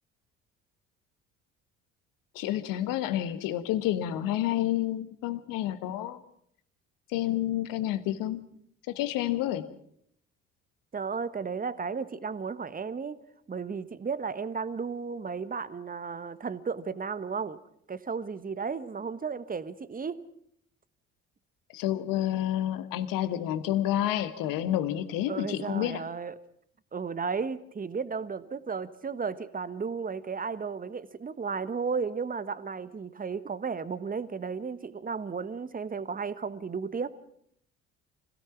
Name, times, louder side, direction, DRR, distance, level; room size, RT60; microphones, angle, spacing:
voice 1, 2.3-6.2 7.1-8.4 8.9-9.6 21.7-26.0, left 13 dB, 65° left, 11 dB, 1.6 m, -29 dB
voice 2, 10.9-13.2 13.5-17.6 17.9-20.2 25.3-26.4 26.9-37.1, right 5 dB, 25° right, 15 dB, 1.3 m, -34 dB
26.0 x 17.0 x 6.0 m, 0.68 s
hypercardioid pair, 55°, 36 cm